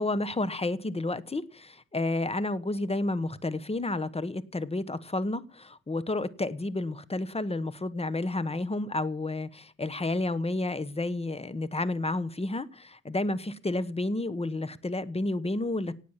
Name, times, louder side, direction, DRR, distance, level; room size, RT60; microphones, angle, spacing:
voice 1, 0.0-15.9, left 2 dB, 20° left, 17 dB, 1.2 m, -31 dB
18.0 x 8.3 x 7.4 m, 0.39 s
cardioid pair, 95°, 30 cm